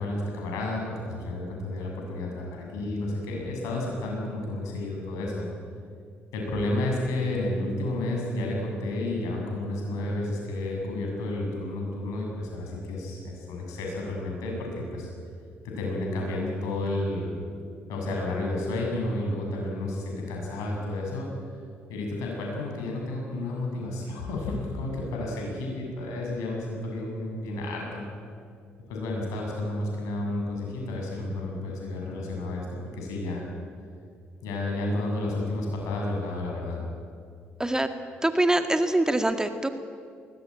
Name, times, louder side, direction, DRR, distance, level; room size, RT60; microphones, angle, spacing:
voice 1, 0.0-5.5 6.3-15.1 15.8-17.3 17.9-21.3 21.9-28.1 28.9-32.7 32.9-33.5 34.4-36.8, left 2 dB, 70° left, 0 dB, 7.4 m, -31 dB
voice 2, 38.2-39.7, right 1 dB, 10° right, 8 dB, 1.9 m, -24 dB
21.5 x 19.5 x 9.0 m, 2.2 s
hypercardioid pair, 50°, 6 cm